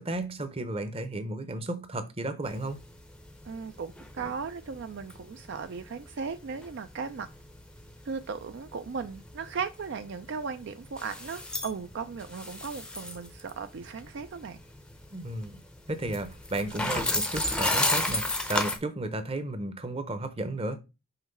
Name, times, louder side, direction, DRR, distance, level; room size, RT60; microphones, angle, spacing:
voice 1, 0.0-2.8 15.1-15.6 15.9-20.8, right 2 dB, 25° right, 0.7 m, -33 dB
sound 1, 2.5-18.8, left 1 dB, 5° left, 0.6 m, -34 dB
voice 2, 3.4-7.3 8.1-14.6, right 5 dB, 55° right, 0.4 m, -37 dB
5.8 x 3.1 x 5.4 m
head